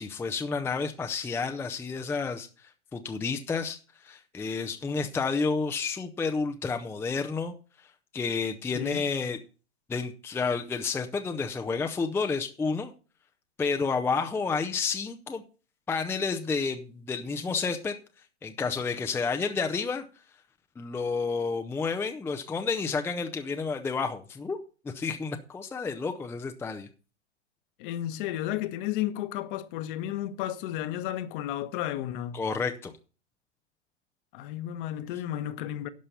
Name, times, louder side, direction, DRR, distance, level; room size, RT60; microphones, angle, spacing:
voice 1, 0.0-9.4 9.9-12.9 13.6-15.4 15.9-17.9 18.4-20.0 20.8-26.9 32.3-32.9, left 4 dB, 5° left, 0.6 m, -30 dB
voice 2, 8.7-9.1 27.8-32.4 34.3-35.9, left 12 dB, 45° left, 1.2 m, -33 dB
11.5 x 5.5 x 6.9 m
hypercardioid pair, 110°, 36 cm